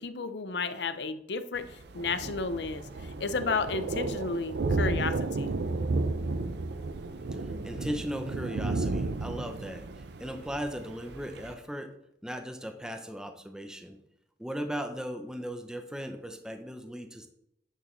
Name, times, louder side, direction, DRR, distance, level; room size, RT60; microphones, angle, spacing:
voice 1, 0.0-1.6 1.9-5.5, left 4 dB, 70° left, 11 dB, 0.6 m, -32 dB
Thunder, 1.6-11.5, right 3 dB, 70° right, 0.6 m, -33 dB
voice 2, 7.3-11.9 12.2-14.0 14.4-17.3, equal, 5° right, 6 dB, 0.6 m, -37 dB
9.2 x 6.2 x 3.1 m, 0.78 s
head